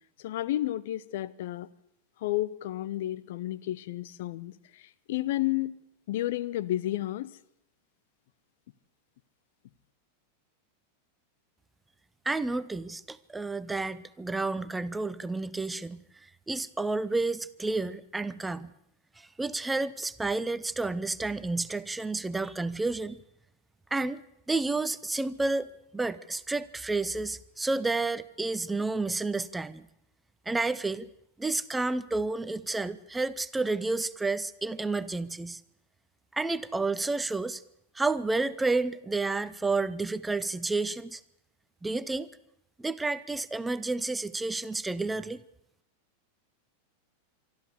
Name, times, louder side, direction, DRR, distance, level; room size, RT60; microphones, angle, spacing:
voice 1, 0.2-1.7 2.2-5.8 6.1-7.4, left 14 dB, 55° left, 0.7 m, -31 dB
voice 2, 12.3-16.0 16.5-18.7 19.2-23.2 23.9-24.2 24.5-29.9 30.5-31.1 31.4-35.6 36.3-37.6 37.9-41.2 41.8-42.3 42.8-45.4, right 3 dB, 10° right, 0.7 m, -30 dB
24.5 x 13.0 x 8.2 m
figure-of-eight pair, 90°, 0 cm